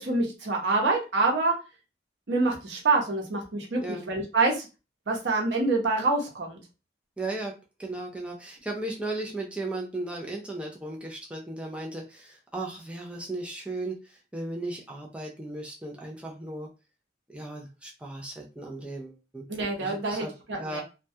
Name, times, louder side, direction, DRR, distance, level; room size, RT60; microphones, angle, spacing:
voice 1, 0.0-1.5 2.3-4.7 5.1-6.6 19.5-20.8, right 3 dB, 80° right, 0 dB, 0.7 m, -26 dB
voice 2, 7.2-7.5 7.8-16.7 17.3-19.4 19.8-20.3 20.6-20.8, right 2 dB, 5° right, -1 dB, 0.4 m, -36 dB
2.2 x 2.2 x 2.6 m, 0.30 s
head